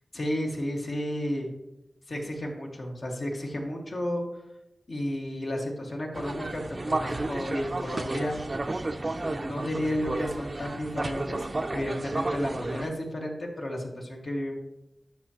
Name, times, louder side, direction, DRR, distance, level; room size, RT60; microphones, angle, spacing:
voice 1, 0.1-1.5 2.1-4.2 4.9-8.4 9.2-11.5 11.7-14.5, left 1 dB, 60° left, -1 dB, 1.8 m, -32 dB
sound 1, 6.1-12.9, right 2 dB, 40° right, 0.5 m, -32 dB
12.5 x 5.9 x 2.9 m, 0.92 s
wide cardioid pair, 75°, 0 cm